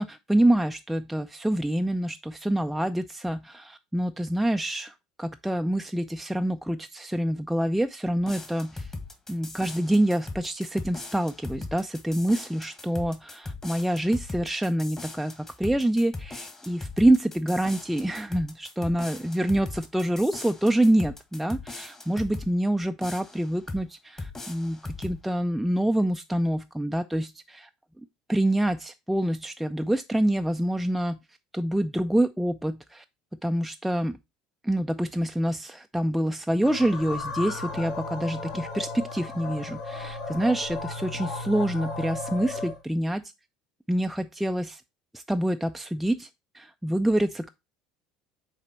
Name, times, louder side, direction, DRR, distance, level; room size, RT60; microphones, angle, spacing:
voice 1, 0.0-8.9 9.3-27.7 28.3-31.2 31.5-33.0 33.4-34.2 34.6-43.2 43.9-44.8 45.1-46.3 46.5-47.5, right 1 dB, 5° right, 0.3 m, -26 dB
sound 1, 8.2-22.5 23.0-23.9 24.2-25.2, left 3 dB, 20° left, 1.6 m, -39 dB
sound 2, 36.6-42.8, left 3 dB, 55° left, 1.6 m, -35 dB
6.6 x 4.1 x 4.2 m
figure-of-eight pair, 65°, 2 cm